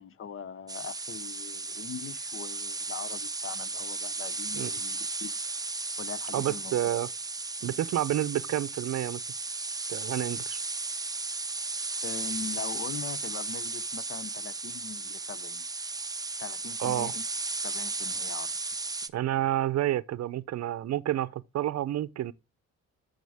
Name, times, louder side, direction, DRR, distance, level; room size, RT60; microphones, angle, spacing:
voice 1, 0.0-5.3 6.0-6.8 7.7-7.8 12.0-15.6 16.4-17.2 17.6-18.5, left 7 dB, 45° left, 0.7 m, -41 dB
sound 1, 0.7-19.1, right 3 dB, 15° right, 0.6 m, -35 dB
voice 2, 6.3-7.1 7.6-9.2 9.9-10.6 16.8-17.1 19.1-22.3, right 13 dB, 60° right, 0.6 m, -29 dB
9.3 x 6.6 x 3.4 m
cardioid pair, 90°, 30 cm